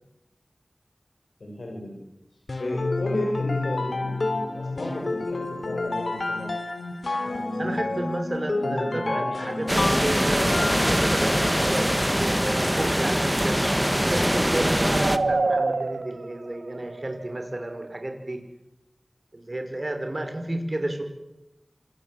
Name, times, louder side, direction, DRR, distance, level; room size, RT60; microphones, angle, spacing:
voice 1, 1.4-2.0 2.6-6.5 7.2-8.1 8.6-9.9, left 1 dB, 90° left, 0 dB, 6.5 m, -33 dB
sound 1, 2.5-11.7, left 2 dB, 70° left, 3.2 m, -29 dB
voice 2, 7.6-13.6 14.0-18.4 19.3-21.0, right 1 dB, 40° right, 5 dB, 5.6 m, -31 dB
sound 2, 9.7-15.2, equal, 5° right, 1.6 m, -23 dB
sound 3, 12.2-18.0, right 3 dB, 90° right, 1.2 m, -30 dB
27.0 x 22.5 x 8.1 m, 0.90 s
wide cardioid pair, 60°, 0 cm